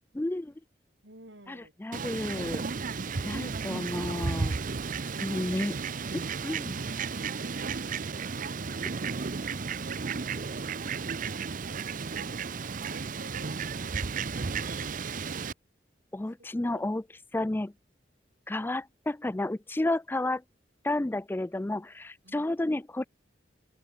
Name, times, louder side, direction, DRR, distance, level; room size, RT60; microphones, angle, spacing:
voice 1, 0.1-0.5 1.5-2.6 3.2-4.6 5.2-5.8 6.1-6.8 16.1-17.0 17.3-17.7 18.5-20.4 20.8-23.0, left 1 dB, 10° left, 0.4 m, -31 dB
voice 2, 1.0-1.7 4.9-5.7 6.8-10.1 10.9-12.4 12.9-15.0 16.5-16.8 22.2-22.4, right 2 dB, 80° right, 7.3 m, -52 dB
Fowl, 1.9-15.5, right 5 dB, 50° right, 0.7 m, -33 dB
head